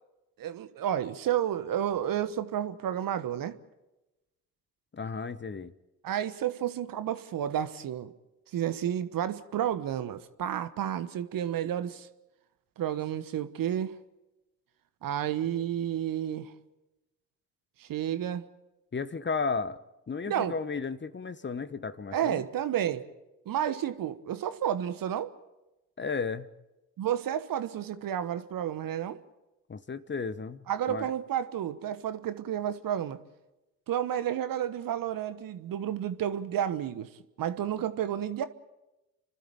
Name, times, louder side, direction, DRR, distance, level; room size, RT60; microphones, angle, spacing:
voice 1, 0.4-3.5 6.0-8.1 8.5-12.1 12.8-14.0 15.0-16.5 17.8-18.4 20.3-20.6 22.1-23.0 23.4-25.3 27.0-29.2 30.7-33.2 33.9-37.1 37.4-38.5, right 10 dB, 55° right, 1.2 m, -31 dB
voice 2, 4.9-5.7 18.9-19.8 20.1-22.4 26.0-26.5 29.7-31.1, left 4 dB, 30° left, 1.1 m, -34 dB
30.0 x 12.5 x 8.9 m
hypercardioid pair, 45°, 40 cm